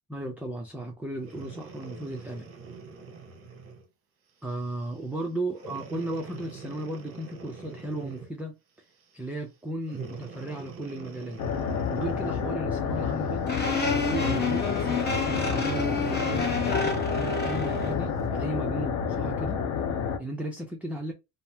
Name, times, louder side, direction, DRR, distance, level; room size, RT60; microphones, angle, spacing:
voice 1, 0.1-2.5 4.4-8.5 9.1-11.4 11.9-13.5 13.8-19.6 20.2-21.1, right 1 dB, 5° right, 0.4 m, -35 dB
Breathing, 1.2-3.9 4.5-4.7 5.5-8.4 9.9-12.7 14.1-16.8 17.5-17.6, right 5 dB, 35° right, 0.9 m, -43 dB
sound 1, 11.4-20.2, left 6 dB, 70° left, 0.7 m, -29 dB
sound 2, 13.5-18.0, left 3 dB, 25° left, 1.0 m, -29 dB
2.7 x 2.0 x 3.2 m
cardioid pair, 110°, 38 cm